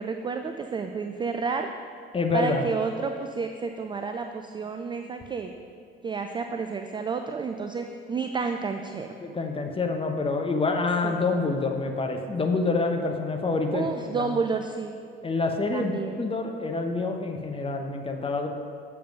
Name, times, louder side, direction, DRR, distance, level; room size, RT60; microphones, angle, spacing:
voice 1, 0.0-1.7 2.3-5.5 6.0-9.1 11.0-11.2 13.7-15.0 15.7-16.2, right 5 dB, 15° right, 6 dB, 0.3 m, -30 dB
voice 2, 2.1-2.6 9.2-14.4 15.2-18.5, left 3 dB, 15° left, 3 dB, 1.0 m, -27 dB
7.6 x 6.9 x 5.4 m, 2.3 s
figure-of-eight pair, 55°, 32 cm